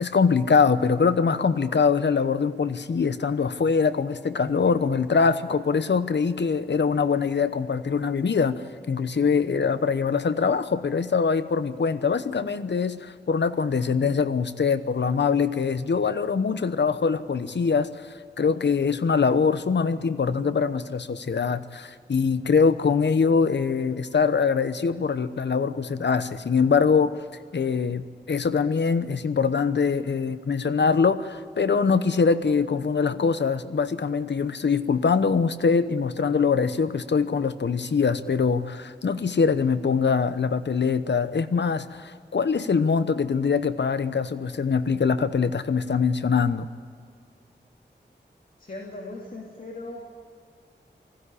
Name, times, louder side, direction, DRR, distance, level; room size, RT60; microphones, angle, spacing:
voice 1, 0.0-17.9 18.4-27.1 27.5-46.7, left 5 dB, 75° left, 12 dB, 0.9 m, -23 dB
voice 2, 48.6-50.0, left 2 dB, 50° left, -1 dB, 2.8 m, -38 dB
20.0 x 15.5 x 10.0 m, 2.2 s
wide cardioid pair, 70°, 18 cm